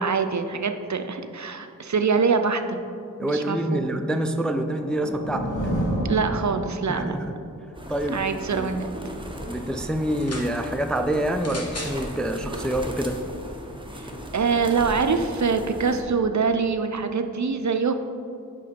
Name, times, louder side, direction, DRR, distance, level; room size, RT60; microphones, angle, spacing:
voice 1, 0.0-2.8 3.2-3.9 6.1-7.2 8.1-8.9 13.9-17.9, right 5 dB, 55° right, 7 dB, 0.5 m, -24 dB
voice 2, 3.2-5.5 6.9-7.2 7.9-8.7 9.5-13.2, right 1 dB, 5° left, 7 dB, 0.3 m, -26 dB
sound 1, 4.4-7.1, equal, 60° left, 1.4 m, -29 dB
sound 2, 7.7-16.0, equal, 15° right, 0.8 m, -36 dB
sound 3, 10.1-10.5 11.4-12.0 12.9-13.0, left 2 dB, 45° left, 1.1 m, -36 dB
10.0 x 3.7 x 4.3 m, 2.5 s
wide cardioid pair, 45°, 34 cm